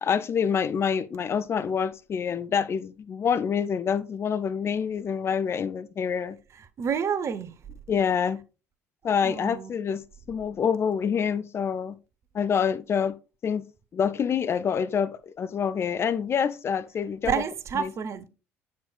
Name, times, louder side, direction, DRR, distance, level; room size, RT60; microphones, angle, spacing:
voice 1, 0.0-6.4 7.9-8.4 9.0-10.0 10.3-12.0 12.3-13.1 13.4-13.6 13.9-17.3 17.8-17.9, left 7 dB, 35° left, 0.5 m, -26 dB
voice 2, 6.8-7.5 9.2-9.7 17.3-18.3, right 7 dB, 40° right, 0.8 m, -29 dB
7.7 x 7.3 x 2.3 m
figure-of-eight pair, 55°, 8 cm